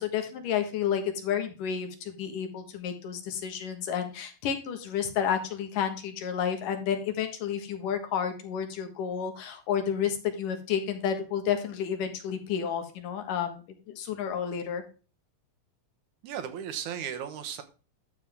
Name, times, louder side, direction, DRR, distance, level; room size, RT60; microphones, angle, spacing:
voice 1, 0.0-13.6 13.9-14.8, left 8 dB, 80° left, 5 dB, 3.1 m, -31 dB
voice 2, 16.2-17.6, right 9 dB, 70° right, 7 dB, 2.4 m, -35 dB
11.5 x 7.2 x 3.5 m, 0.35 s
omnidirectional pair, 3.7 m